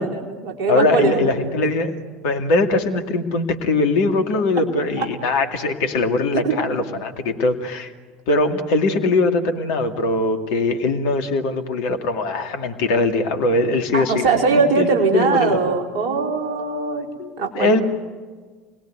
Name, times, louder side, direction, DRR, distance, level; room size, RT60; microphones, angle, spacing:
voice 1, 0.0-1.4 5.0-5.1 6.3-6.6 13.9-17.1 17.4-17.7, right 4 dB, 55° right, 1 dB, 4.6 m, -21 dB
voice 2, 0.7-1.9 2.2-7.9 8.3-15.6 17.2-17.8, left 2 dB, 60° left, 6 dB, 2.4 m, -21 dB
30.0 x 21.0 x 9.5 m, 1.5 s
figure-of-eight pair, 65°, 0 cm